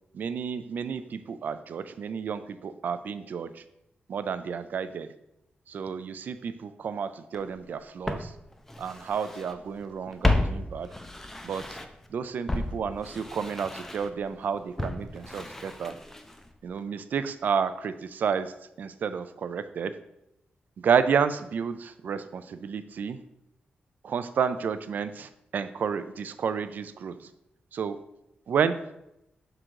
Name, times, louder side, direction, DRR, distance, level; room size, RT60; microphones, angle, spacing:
voice 1, 0.1-3.6 4.1-5.1 5.7-8.3 8.8-10.9 11.4-11.8 12.1-16.0 16.6-20.0 20.8-23.2 24.0-27.3 27.7-28.0 28.5-28.8, right 6 dB, 60° right, 12 dB, 0.3 m, -31 dB
Walk footsteps, 7.3-7.4 8.1-9.5 9.8-12.1 12.5-16.5 16.8-16.9, left 2 dB, 10° left, 0.4 m, -32 dB
6.3 x 3.8 x 4.5 m, 0.84 s
wide cardioid pair, 180°, 3 cm